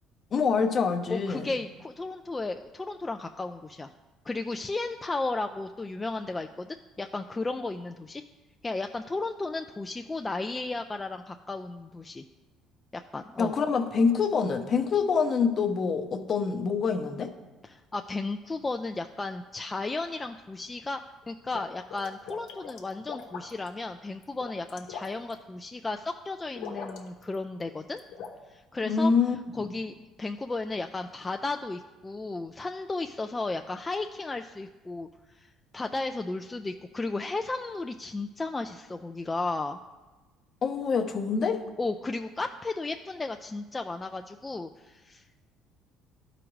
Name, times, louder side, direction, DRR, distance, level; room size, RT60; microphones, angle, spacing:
voice 1, 0.3-1.5 13.4-17.3 28.9-29.7 40.6-41.6, left 5 dB, 45° left, 6 dB, 0.7 m, -26 dB
voice 2, 1.1-3.9 4.3-8.2 8.6-12.2 12.9-13.6 17.6-21.0 21.3-28.0 28.5-29.1 29.5-39.8 41.8-45.4, left 3 dB, 20° left, 5 dB, 0.3 m, -34 dB
sound 1, 21.2-23.7 24.2-25.3 26.5-27.3 27.6-28.3, left 6 dB, 80° left, 0.9 m, -41 dB
12.0 x 5.0 x 3.1 m, 1.2 s
supercardioid pair, 95°, 0 cm